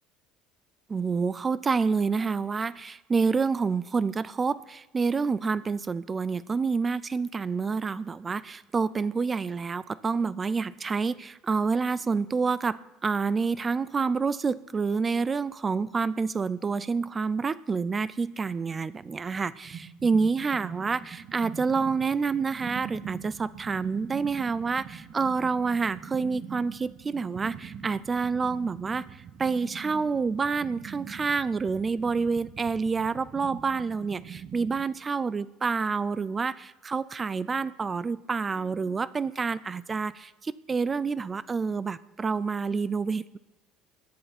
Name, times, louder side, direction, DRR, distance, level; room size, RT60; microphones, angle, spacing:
voice 1, 0.9-43.4, right 5 dB, 20° right, 19 dB, 0.4 m, -28 dB
sound 1, 19.0-34.8, right 8 dB, 40° right, 1.3 m, -44 dB
17.5 x 10.5 x 4.3 m, 1.1 s
cardioid pair, 140°, 0 cm